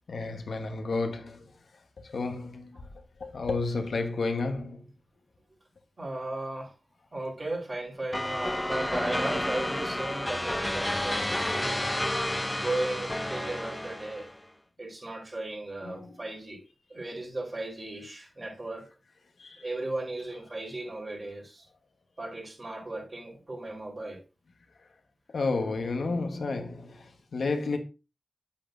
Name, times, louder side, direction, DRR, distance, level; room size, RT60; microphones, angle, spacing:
voice 1, 0.1-2.9 3.2-4.9 15.8-16.4 19.4-19.8 20.4-20.8 25.3-27.8, left 3 dB, 85° left, 1.2 m, -32 dB
voice 2, 6.0-6.7 7.1-11.9 12.5-14.3 14.8-16.6 16.9-18.8 19.6-21.7 22.2-24.2, right 2 dB, 45° right, 4.0 m, -36 dB
sound 1, 8.1-14.4, left 1 dB, 15° left, 0.5 m, -30 dB
8.6 x 8.5 x 2.6 m
cardioid pair, 60°, 0 cm